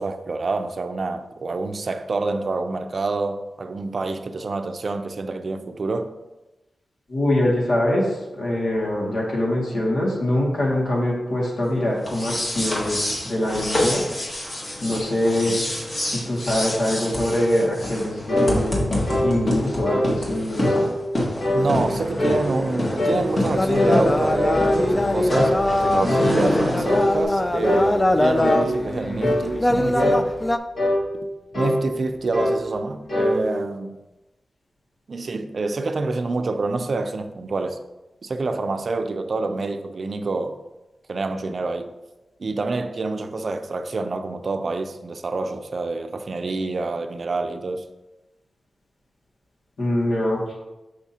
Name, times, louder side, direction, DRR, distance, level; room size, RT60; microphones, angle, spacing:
voice 1, 0.0-6.2 15.5-15.6 21.5-30.3 31.5-34.0 35.1-37.8 38.2-40.6 41.1-41.9 42.4-47.9, right 3 dB, 55° right, 0.4 m, -27 dB
voice 2, 7.1-14.0 14.8-15.6 16.0-18.9 19.2-20.9 49.8-50.5, left 1 dB, 85° left, 2.0 m, -23 dB
sound 1, 12.0-27.2, left 1 dB, 45° left, 1.6 m, -27 dB
sound 2, 18.3-18.5 19.1-19.3 19.9-20.1 20.6-20.9 21.4-21.7 22.2-22.5 23.0-23.2 23.7-24.8 25.3-25.5 26.1-26.3 26.9-27.1 27.6-27.9 28.4-28.7 29.2-29.4 30.0-30.2 30.8-31.0 31.5-31.8 32.3-32.6 33.1-33.3, left 1 dB, 65° left, 2.2 m, -22 dB
sound 3, 23.5-30.6, left 1 dB, 20° left, 0.4 m, -23 dB
6.2 x 5.9 x 2.8 m
wide cardioid pair, 95°, 0 cm